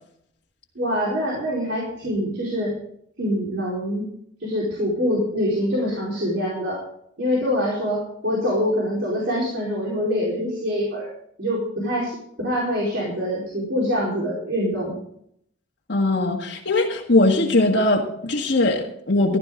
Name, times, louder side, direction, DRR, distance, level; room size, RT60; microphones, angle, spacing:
voice 1, 0.7-2.7 3.2-4.0 4.4-6.8 7.2-11.1 11.4-15.0, equal, 70° right, -5 dB, 4.4 m, -25 dB
voice 2, 15.9-19.4, left 2 dB, 65° left, -1 dB, 1.7 m, -20 dB
15.5 x 12.0 x 3.8 m, 0.68 s
head